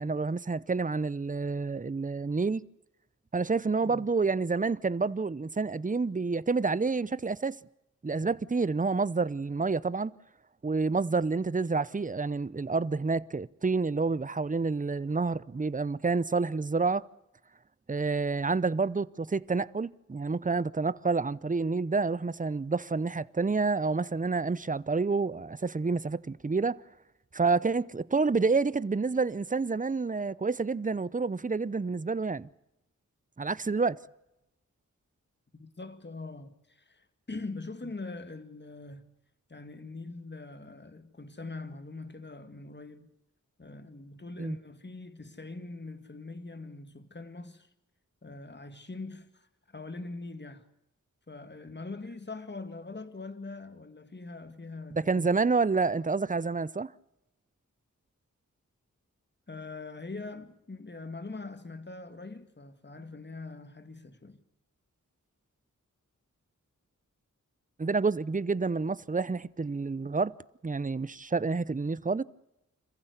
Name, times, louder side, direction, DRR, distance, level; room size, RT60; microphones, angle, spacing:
voice 1, 0.0-2.6 3.3-7.6 8.0-10.1 10.6-17.0 17.9-26.8 27.3-32.5 33.4-34.0 44.4-44.6 54.9-56.9 67.8-70.3 70.6-72.2, right 4 dB, 25° right, 0.7 m, -28 dB
voice 2, 35.6-39.1 39.5-43.1 43.6-47.7 48.2-50.6 51.3-55.3 59.5-64.4, left 3 dB, 35° left, 2.1 m, -43 dB
26.5 x 15.0 x 8.2 m
cardioid pair, 55°, 31 cm